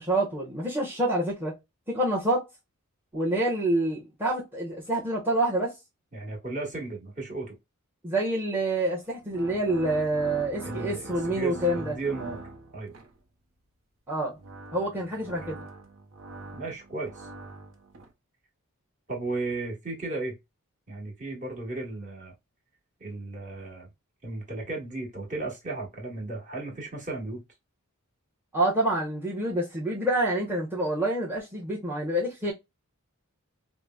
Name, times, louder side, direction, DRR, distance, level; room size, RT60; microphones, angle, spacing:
voice 1, 0.0-1.5 1.9-2.5 3.1-5.7 8.0-12.0 14.1-14.4 14.7-15.6 28.5-32.5, right 1 dB, 10° right, 0.9 m, -27 dB
voice 2, 6.1-7.6 10.6-12.4 12.7-12.9 16.6-17.3 19.1-20.4 20.9-22.3 23.0-23.9 24.2-27.4, right 3 dB, 35° right, 1.5 m, -35 dB
sound 1, 9.1-13.2 14.1-18.1, right 2 dB, 65° right, 0.7 m, -42 dB
4.8 x 2.0 x 2.3 m
head